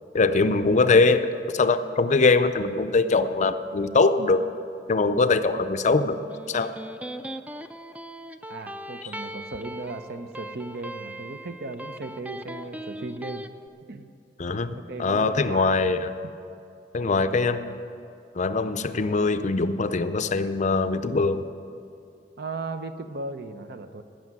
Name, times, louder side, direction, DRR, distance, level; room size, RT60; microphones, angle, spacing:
voice 1, 0.1-1.3 1.5-4.4 4.9-6.2 6.5-6.7 14.4-16.1 16.9-17.8 18.4-21.5, left 3 dB, 40° left, 11 dB, 0.5 m, -22 dB
Electric guitar, 6.1-13.5, right 1 dB, 10° right, 0.4 m, -39 dB
voice 2, 8.5-13.5 13.9-14.1 14.9-15.8 16.2-16.3 17.0-17.3 22.4-24.0, right 3 dB, 60° right, 9 dB, 0.7 m, -36 dB
15.5 x 6.4 x 9.3 m, 2.5 s
head